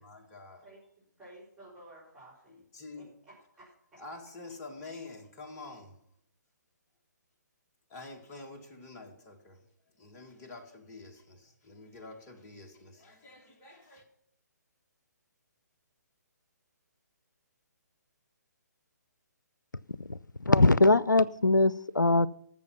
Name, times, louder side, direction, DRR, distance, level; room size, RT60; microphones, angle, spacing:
voice 1, 0.0-0.7 2.7-3.1 4.0-6.0 7.9-9.6 10.0-14.1, left 3 dB, 20° left, 3 dB, 1.7 m, -47 dB
voice 2, 0.6-2.6 2.9-4.0, right 1 dB, 5° right, -11 dB, 4.3 m, -54 dB
voice 3, 20.5-22.3, left 2 dB, 90° left, 19 dB, 0.5 m, -22 dB
13.5 x 7.2 x 5.8 m, 0.71 s
figure-of-eight pair, 135°, 10 cm